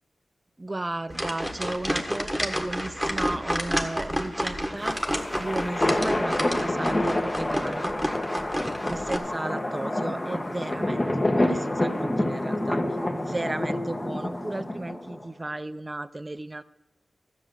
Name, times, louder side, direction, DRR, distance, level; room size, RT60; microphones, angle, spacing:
voice 1, 0.6-5.0 5.4-8.0 8.9-12.8 13.1-16.6, right 2 dB, 25° right, 13 dB, 0.5 m, -34 dB
sound 1, 1.1-9.2, equal, ahead, 1.4 m, -30 dB
sound 2, 4.8-15.2, left 1 dB, 25° left, 1.2 m, -28 dB
13.5 x 6.3 x 7.7 m, 0.91 s
wide cardioid pair, 85°, 0 cm